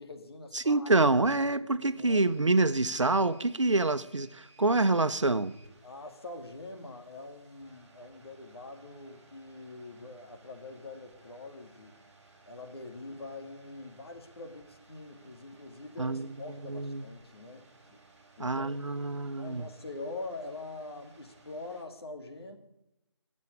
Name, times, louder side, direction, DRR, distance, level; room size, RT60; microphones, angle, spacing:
voice 1, 0.0-0.9 1.7-2.3 5.8-12.0 12.4-18.0 18.4-18.7 19.4-22.6, left 2 dB, 55° left, 2.7 m, -44 dB
voice 2, 0.5-5.5 16.0-16.3 16.7-17.0 18.4-19.7, right 2 dB, 80° right, 1.0 m, -26 dB
sound 1, 2.0-21.8, right 2 dB, 30° right, 3.8 m, -60 dB
19.0 x 7.5 x 8.2 m
figure-of-eight pair, 160°, 15 cm